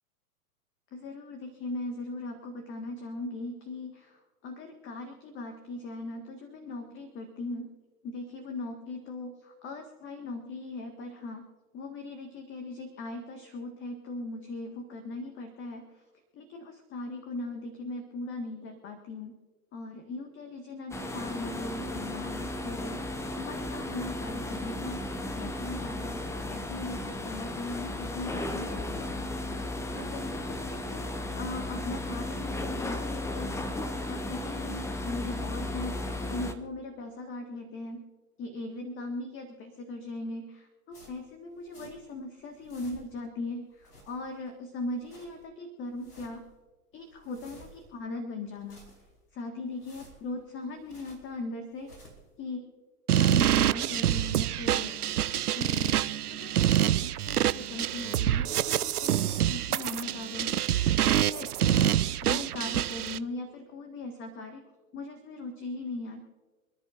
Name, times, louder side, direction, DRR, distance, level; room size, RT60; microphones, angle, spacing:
voice 1, 0.9-7.7 8.0-11.5 11.7-16.1 16.3-19.4 19.7-25.0 25.3-29.1 29.9-38.0 38.4-46.4 46.9-48.8 49.3-51.9 52.4-52.7 53.1-56.0 56.3-60.6 61.0-61.9 62.2-64.6 64.9-66.2, left 2 dB, 25° left, 4 dB, 1.7 m, -39 dB
sound 1, 20.9-36.5, left 1 dB, 5° left, 0.8 m, -35 dB
sound 2, 40.9-42.2 42.5-43.3 43.7-44.5 44.8-45.5 45.9-46.5 46.9-48.0 48.4-49.3 49.7-51.4 51.7-52.3, equal, 90° left, 4.3 m, -55 dB
sound 3, 53.1-63.2, right 11 dB, 80° right, 0.6 m, -26 dB
28.0 x 11.0 x 2.6 m, 1.3 s
figure-of-eight pair, 105°, 45 cm